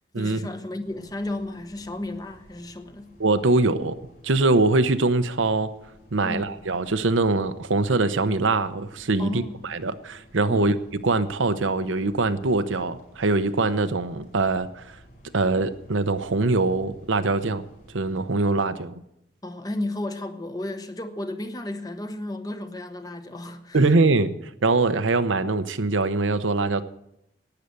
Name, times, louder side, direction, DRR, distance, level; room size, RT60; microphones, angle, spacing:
voice 1, 0.2-3.1 6.2-6.5 9.2-9.7 10.5-10.8 19.4-23.9, left 1 dB, 20° left, 0.8 m, -33 dB
sound 1, 0.8-18.7, equal, 50° left, 4.9 m, -53 dB
voice 2, 3.2-4.0 4.2-5.7 6.1-10.8 11.0-15.0 15.3-17.6 17.9-18.9 23.7-24.3 24.6-26.8, right 3 dB, 90° right, 0.8 m, -23 dB
12.0 x 9.2 x 8.3 m
head